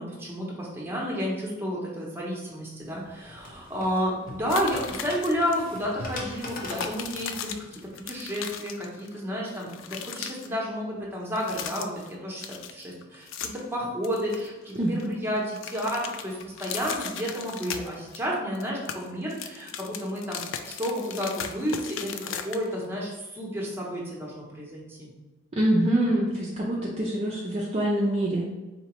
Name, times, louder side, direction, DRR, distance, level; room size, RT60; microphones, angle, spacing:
voice 1, 0.0-25.1, equal, 10° right, -4 dB, 0.8 m, -31 dB
sound 1, 2.8-8.2, left 2 dB, 45° left, 0.7 m, -41 dB
sound 2, 4.5-5.6 5.8-6.0 6.4-9.2 9.4-10.5 11.2-12.1 12.4-13.7 14.0-15.1 15.4-18.3 18.6-22.9, left 8 dB, 75° left, 0.3 m, -37 dB
voice 2, 14.8-15.2 25.5-28.5, right 1 dB, 30° right, -4 dB, 0.4 m, -25 dB
4.2 x 2.8 x 3.0 m, 1.2 s
head